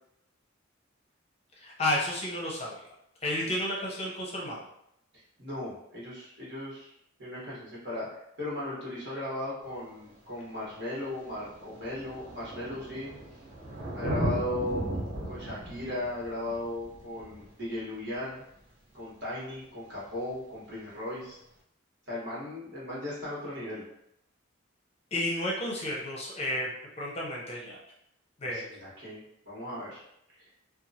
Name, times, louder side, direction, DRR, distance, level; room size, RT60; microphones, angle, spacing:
voice 1, 1.6-2.8 3.2-4.6 25.1-26.7 27.0-27.8 28.4-28.7, left 1 dB, 30° left, -3 dB, 0.6 m, -31 dB
voice 2, 5.4-6.9 7.2-13.1 13.9-18.4 18.9-21.4 22.1-23.8 28.4-30.0 30.4-30.5, left 1 dB, 60° right, -7 dB, 1.3 m, -37 dB
Thunder, 9.7-9.8 10.8-10.9 11.1-18.4 20.1-20.2, right 1 dB, 40° right, 0.8 m, -36 dB
2.8 x 2.3 x 2.7 m, 0.78 s
head